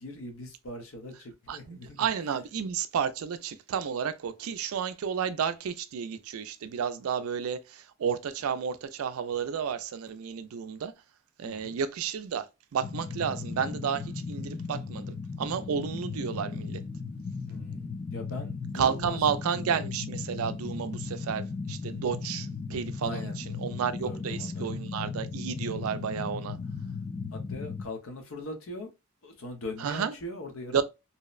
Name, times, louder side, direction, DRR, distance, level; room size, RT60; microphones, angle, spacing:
voice 1, 0.0-2.1 11.4-11.8 17.5-19.9 23.0-23.4 24.0-24.7 27.3-28.9 29.2-30.8, left 1 dB, 70° left, 0.7 m, -41 dB
voice 2, 1.5-10.9 11.4-12.5 12.7-16.8 18.7-26.6 29.8-30.1 30.7-30.8, right 7 dB, 80° right, 0.4 m, -31 dB
sound 1, 12.8-27.8, left 4 dB, 30° left, 0.4 m, -36 dB
2.7 x 2.0 x 2.3 m
head